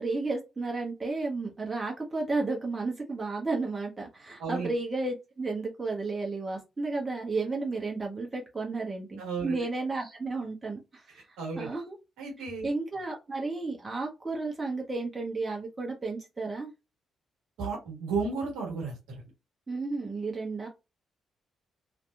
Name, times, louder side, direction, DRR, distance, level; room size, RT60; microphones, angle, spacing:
voice 1, 0.0-11.9 12.6-16.7 19.7-20.7, right 3 dB, 30° right, 0 dB, 0.8 m, -33 dB
voice 2, 4.4-4.7 9.2-9.6 11.4-11.7 12.2-12.7 17.6-19.2, right 4 dB, 65° right, -1 dB, 1.2 m, -33 dB
2.8 x 2.5 x 2.3 m, 0.26 s
figure-of-eight pair, 40°, 0 cm